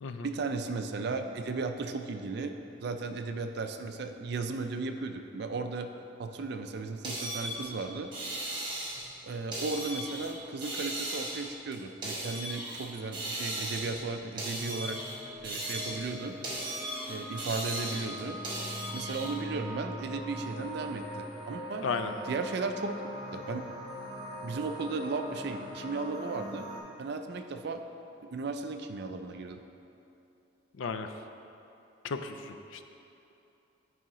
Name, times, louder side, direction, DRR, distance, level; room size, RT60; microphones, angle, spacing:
voice 1, 0.2-2.5 2.8-5.9 6.2-8.1 9.2-15.0 15.4-16.3 17.1-18.4 18.9-21.8 22.3-22.9 23.3-23.6 24.4-26.7 27.0-27.8 28.2-29.6, right 3 dB, 55° right, 6 dB, 0.4 m, -35 dB
sound 1, 7.0-9.1 9.5-10.3 10.6-12.9 13.1-14.1 14.4-16.1 16.4-19.3, right 1 dB, 25° right, 1.3 m, -37 dB
sound 2, 14.5-26.8, equal, ahead, 1.3 m, -42 dB
voice 2, 30.8-31.1 32.0-32.8, left 5 dB, 75° left, 8 dB, 0.4 m, -34 dB
9.9 x 4.8 x 3.0 m, 2.8 s
head